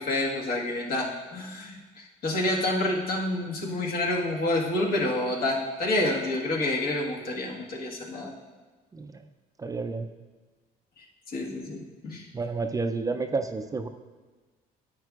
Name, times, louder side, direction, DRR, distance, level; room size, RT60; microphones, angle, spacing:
voice 1, 0.0-8.3 11.0-12.3, left 1 dB, 65° left, -1 dB, 1.6 m, -28 dB
voice 2, 8.9-9.3 9.6-10.1 12.3-13.9, right 3 dB, 20° right, 7 dB, 0.4 m, -30 dB
10.5 x 8.5 x 2.4 m, 1.3 s
cardioid pair, 110°, 17 cm